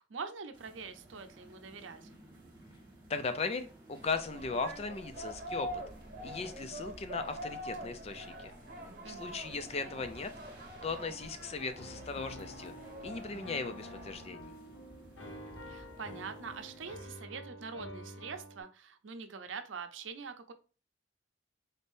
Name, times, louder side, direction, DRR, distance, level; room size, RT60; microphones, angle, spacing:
voice 1, 0.0-2.1 9.0-9.9 15.6-20.5, right 5 dB, 90° right, 8 dB, 0.6 m, -44 dB
sound 1, 0.5-17.1, right 1 dB, 25° right, 1.4 m, -55 dB
voice 2, 3.1-5.7 6.2-8.5 9.1-10.3 10.8-12.7 13.0-14.5, left 4 dB, 35° left, 9 dB, 0.4 m, -37 dB
sound 2, 4.0-14.3, equal, 45° right, 0.9 m, -45 dB
Piano, 11.8-18.6, equal, 80° left, 0.8 m, -48 dB
4.1 x 3.6 x 2.6 m, 0.36 s
head